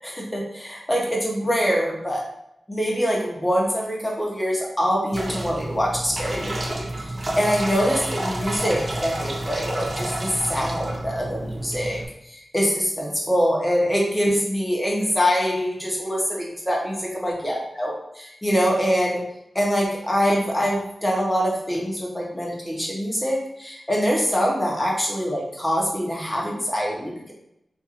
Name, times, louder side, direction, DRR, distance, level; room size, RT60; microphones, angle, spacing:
voice 1, 0.0-2.2 2.7-7.1 7.4-12.0 12.3-16.9 17.2-19.2 19.5-27.3, equal, 10° left, -3 dB, 0.9 m, -24 dB
sound 1, 5.1-12.1, right 1 dB, 45° right, 0.5 m, -30 dB
2.6 x 2.5 x 2.8 m, 0.80 s
wide cardioid pair, 65°, 0 cm